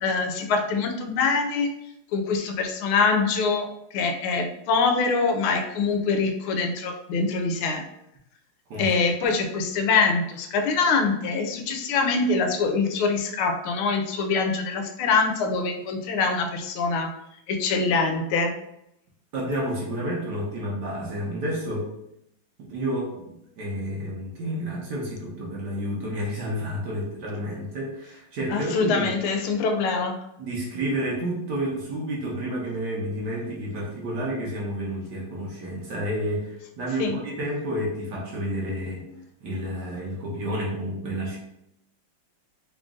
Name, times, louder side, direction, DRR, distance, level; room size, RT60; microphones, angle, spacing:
voice 1, 0.0-1.7 2.1-7.8 8.8-17.1 17.5-18.5 28.5-30.2 37.0-37.2, left 4 dB, 80° left, 5 dB, 1.5 m, -24 dB
voice 2, 19.3-21.9 22.6-29.1 30.4-39.0 39.4-41.4, equal, 60° right, -3 dB, 1.4 m, -30 dB
4.0 x 2.5 x 3.6 m, 0.81 s
omnidirectional pair, 2.3 m